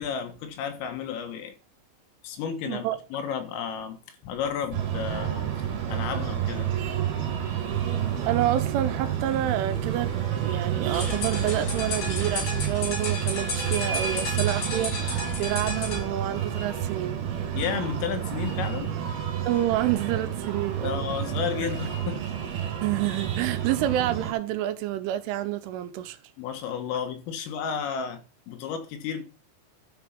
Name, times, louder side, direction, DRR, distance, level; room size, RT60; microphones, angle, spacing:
voice 1, 0.0-1.5 2.2-5.5 5.9-6.7 17.5-18.9 20.8-22.3 26.4-29.2, left 7 dB, 85° left, 4.2 m, -32 dB
voice 2, 2.7-3.0 8.3-10.1 10.4-17.2 19.5-21.0 22.8-26.2, right 13 dB, 80° right, 3.2 m, -28 dB
Breathing, 4.7-24.3, right 9 dB, 55° right, 3.8 m, -29 dB
sound 1, 10.9-16.0, left 3 dB, 50° left, 6.4 m, -32 dB
12.5 x 5.6 x 6.0 m
omnidirectional pair, 5.8 m